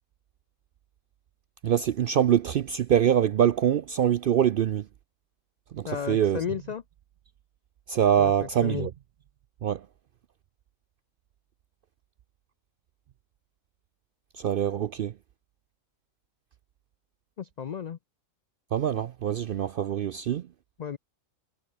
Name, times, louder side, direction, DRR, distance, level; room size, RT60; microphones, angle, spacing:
voice 1, 1.6-4.8 5.7-6.4 7.9-8.9 9.6-9.8 14.4-15.1 18.7-20.4, right 9 dB, 65° right, 0.5 m, -24 dB
voice 2, 5.8-6.8 8.2-8.9 17.4-18.0 20.8-21.0, left 7 dB, 90° left, 0.3 m, -34 dB
omnidirectional pair, 1.4 m